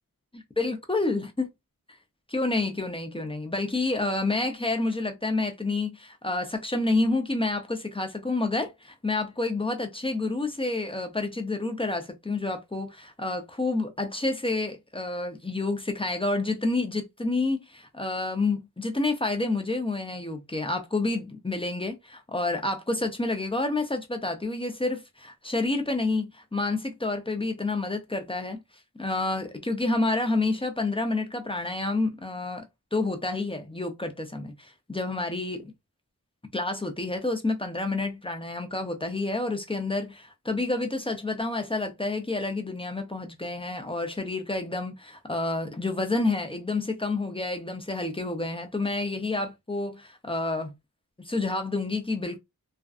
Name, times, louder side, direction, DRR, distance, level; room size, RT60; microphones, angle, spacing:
voice 1, 0.6-1.5 2.3-28.6 29.0-32.7 32.9-35.7 36.5-50.7 51.2-52.4, left 2 dB, 15° left, 0.5 m, -29 dB
2.5 x 2.2 x 2.3 m
wide cardioid pair, 60°, 36 cm